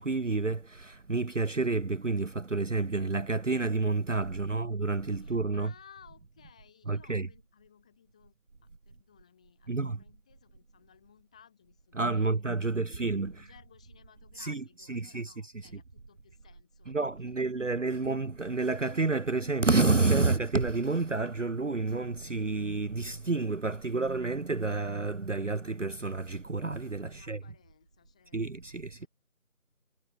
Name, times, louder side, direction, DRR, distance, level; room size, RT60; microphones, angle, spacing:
voice 1, 0.0-5.7 6.9-7.3 9.7-10.0 11.9-13.5 14.3-15.7 16.8-27.5 28.3-29.1, right 3 dB, 55° right, 0.9 m, -29 dB
voice 2, 4.3-4.8 5.2-18.0 27.0-29.1, left 8 dB, 5° left, 3.5 m, -60 dB
figure-of-eight pair, 170°, 43 cm